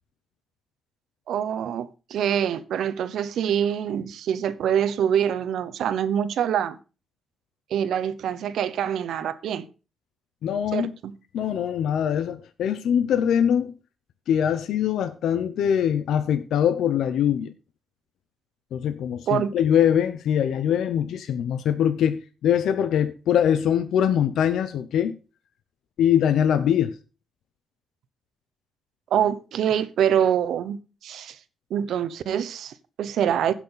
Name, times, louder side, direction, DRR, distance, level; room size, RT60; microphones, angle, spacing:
voice 1, 1.3-6.8 7.7-9.7 10.7-11.1 19.3-19.5 29.1-31.4 31.7-33.5, right 9 dB, 80° right, 0.9 m, -25 dB
voice 2, 10.4-10.9 11.3-13.7 14.3-17.5 18.7-25.1 26.0-26.9, left 9 dB, 85° left, 0.8 m, -23 dB
16.0 x 6.0 x 4.0 m
cardioid pair, 80°, 0 cm